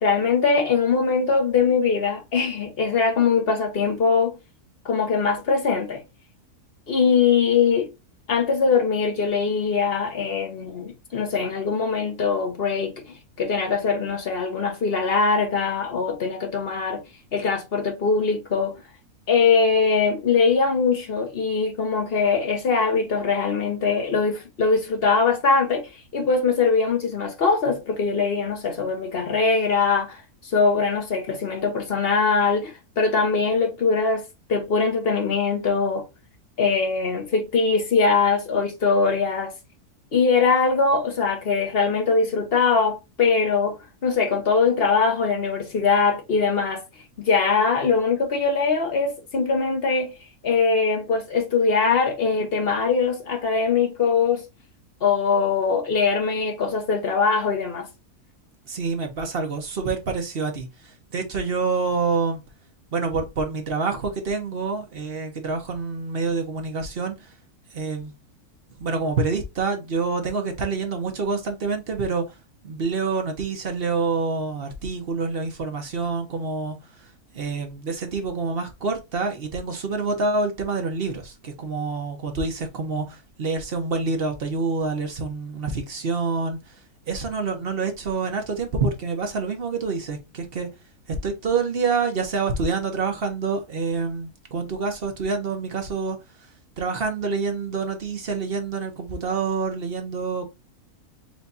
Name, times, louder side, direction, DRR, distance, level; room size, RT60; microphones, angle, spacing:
voice 1, 0.0-4.4 4.8-6.0 6.9-7.9 8.3-17.0 17.3-18.7 19.3-34.2 34.5-36.0 36.6-39.5 40.1-43.8 44.0-46.8 47.2-50.1 50.4-54.4 55.0-57.9, left 5 dB, 40° left, 1.2 m, -22 dB
voice 2, 58.7-62.4 62.9-67.2 67.7-68.1 68.8-72.2 72.6-76.8 77.3-86.6 87.1-90.7 91.1-96.2 96.8-100.4, right 4 dB, 45° right, 1.1 m, -27 dB
4.7 x 3.2 x 2.7 m
omnidirectional pair, 1.6 m